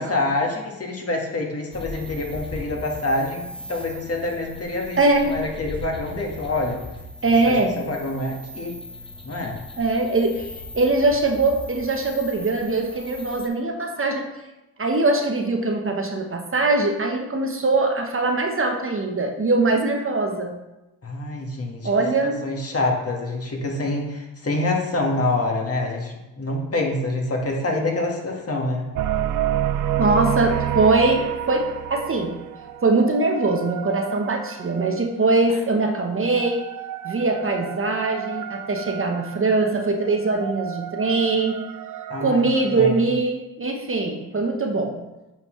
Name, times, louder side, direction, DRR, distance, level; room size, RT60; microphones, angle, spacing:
voice 1, 0.0-5.0 5.2-6.8 7.4-8.8 9.2-9.6 21.0-21.9 22.2-28.8 42.1-43.0, left 2 dB, 35° left, 1 dB, 1.5 m, -26 dB
sound 1, 1.7-13.5, left 1 dB, 15° left, 1.0 m, -39 dB
voice 2, 5.0-5.3 7.2-7.8 9.8-14.3 14.8-20.6 21.8-22.4 30.0-32.3 32.8-36.6 37.0-41.6 42.2-45.0, right 3 dB, 35° right, 2 dB, 1.0 m, -22 dB
sound 2, 29.0-35.2 36.0-43.0, right 11 dB, 55° right, 0.5 m, -30 dB
8.8 x 4.1 x 3.1 m, 0.99 s
cardioid pair, 65°, 39 cm